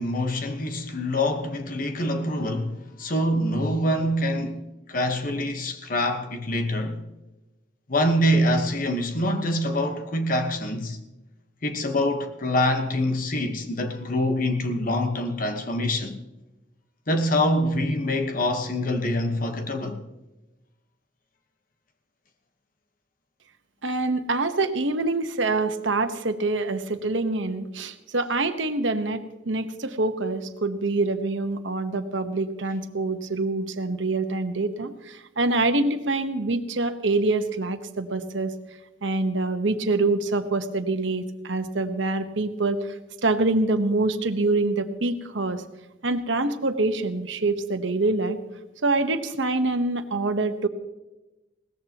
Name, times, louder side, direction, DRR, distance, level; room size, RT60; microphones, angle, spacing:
voice 1, 0.0-4.6 4.9-7.0 7.9-11.0 11.6-16.2 17.1-20.0, left 1 dB, 45° left, 1.2 m, -25 dB
voice 2, 23.8-38.5 39.0-42.9 43.2-45.6 46.0-48.4 48.8-50.7, right 2 dB, 75° right, 1.2 m, -25 dB
21.0 x 18.0 x 3.0 m
head